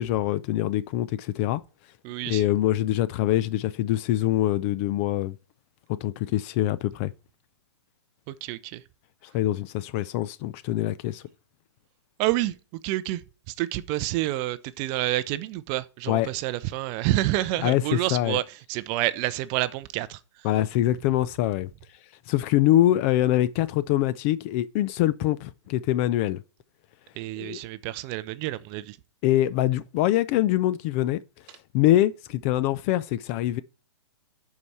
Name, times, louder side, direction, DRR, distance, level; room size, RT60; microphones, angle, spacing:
voice 1, 0.0-1.6 2.3-5.4 6.0-7.1 9.3-11.2 16.1-16.3 17.6-18.4 20.4-21.7 22.3-26.4 27.4-27.6 29.2-31.2 31.7-33.6, left 14 dB, 30° left, 0.4 m, -24 dB
voice 2, 2.0-2.4 8.3-8.8 12.2-20.5 27.2-29.0, right 16 dB, 30° right, 0.5 m, -29 dB
11.0 x 4.8 x 4.3 m
hypercardioid pair, 145°, 15 cm